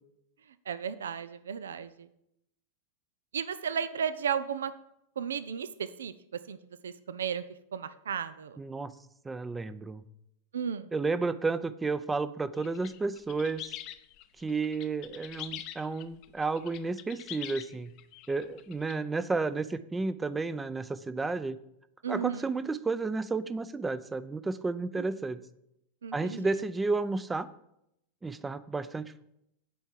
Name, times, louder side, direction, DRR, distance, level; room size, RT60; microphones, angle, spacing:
voice 1, 0.7-2.1 3.3-4.7 5.2-6.6 6.8-7.4 7.7-8.6 10.5-10.9 22.0-22.5 25.0-25.1 26.0-26.5, right 7 dB, 80° right, 14 dB, 0.5 m, -34 dB
voice 2, 8.6-8.9 9.2-10.0 10.9-13.8 14.4-17.9 18.3-21.6 22.1-25.4 26.1-27.5 28.2-29.2, right 3 dB, 15° right, 14 dB, 0.6 m, -32 dB
sound 1, 12.5-18.9, left 12 dB, 50° left, 0.7 m, -44 dB
8.5 x 4.6 x 7.4 m, 0.79 s
hypercardioid pair, 100°, 0 cm